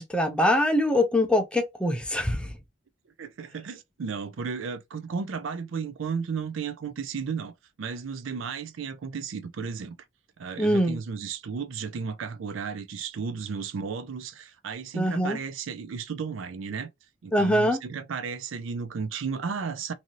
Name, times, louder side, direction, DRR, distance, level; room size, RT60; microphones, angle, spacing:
voice 1, 0.0-2.5 10.6-11.0 14.9-15.4 17.3-17.8, left 1 dB, 5° left, 0.5 m, -23 dB
voice 2, 3.2-10.0 10.4-16.9 17.2-19.9, right 5 dB, 85° right, 0.4 m, -34 dB
2.7 x 2.6 x 2.9 m
head